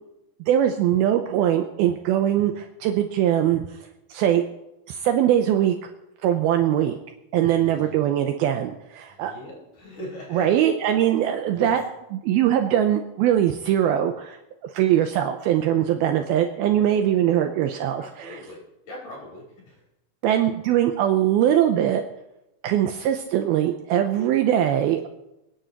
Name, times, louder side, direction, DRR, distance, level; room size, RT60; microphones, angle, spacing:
voice 1, 0.4-3.7 4.1-4.4 4.9-5.8 6.2-7.0 7.3-9.3 10.3-11.8 12.1-14.4 14.7-18.4 20.2-22.0 22.6-25.1, right 11 dB, 80° right, 5 dB, 2.3 m, -21 dB
voice 2, 7.5-8.0 9.1-10.5 11.5-11.8 17.2-17.4 18.0-19.8, left 1 dB, 45° left, -3 dB, 5.7 m, -40 dB
28.5 x 10.0 x 3.0 m, 0.91 s
omnidirectional pair, 5.0 m